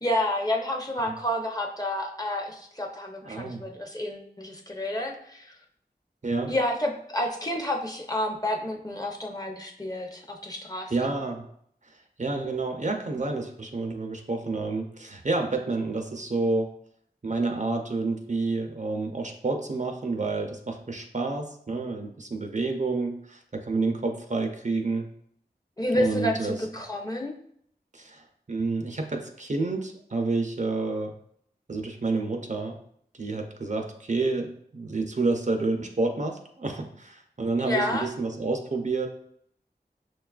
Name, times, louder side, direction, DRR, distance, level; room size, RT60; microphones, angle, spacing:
voice 1, 0.0-5.6 6.5-11.1 25.8-27.3 37.6-38.1, left 1 dB, 20° left, 1 dB, 0.6 m, -29 dB
voice 2, 3.2-3.6 6.2-6.5 10.9-11.5 11.9-16.8 17.2-25.1 25.9-26.6 27.9-31.1 31.7-32.8 33.1-39.1, right 3 dB, 45° right, 3 dB, 0.4 m, -29 dB
6.0 x 2.3 x 2.3 m, 0.68 s
wide cardioid pair, 40°, 17 cm